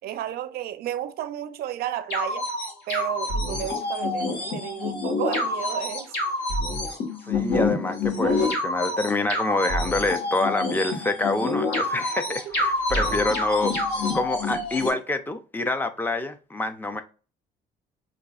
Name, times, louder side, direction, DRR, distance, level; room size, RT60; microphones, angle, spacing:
voice 1, 0.0-6.2 12.3-12.4, right 12 dB, 65° right, 0.4 m, -32 dB
sound 1, 2.1-14.9, left 2 dB, 75° left, 1.3 m, -27 dB
voice 2, 7.3-13.8 14.1-17.0, left 2 dB, 10° left, 0.4 m, -26 dB
5.0 x 2.4 x 2.3 m
cardioid pair, 110°, 17 cm